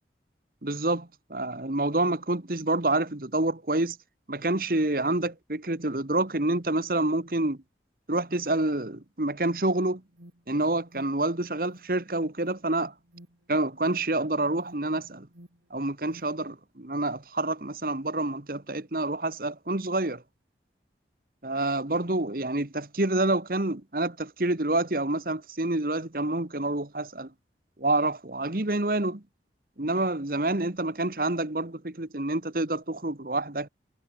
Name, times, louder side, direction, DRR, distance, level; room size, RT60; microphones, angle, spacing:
voice 1, 0.6-4.0 4.3-7.6 8.1-10.0 10.5-12.9 13.5-15.3 15.7-20.2 21.4-27.3 27.8-29.2 29.8-33.7, right 2 dB, 50° right, 1.6 m, -28 dB
Alarm, 9.5-16.3, equal, 85° right, 5.8 m, -54 dB
head